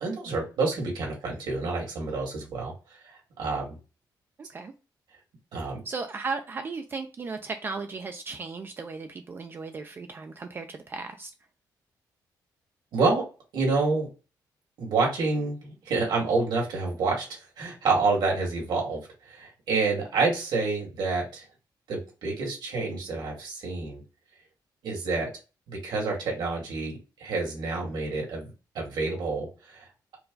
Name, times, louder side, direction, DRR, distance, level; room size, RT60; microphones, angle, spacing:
voice 1, 0.0-2.7 3.0-3.8 5.5-5.8 12.9-13.2 13.5-14.1 14.8-19.0 19.2-21.4 21.9-24.0 24.8-25.3 25.7-29.9, right 3 dB, 75° right, 2.1 m, -28 dB
voice 2, 5.9-11.3, right 4 dB, 30° right, 0.4 m, -36 dB
4.5 x 2.2 x 3.8 m
wide cardioid pair, 175°, 8 cm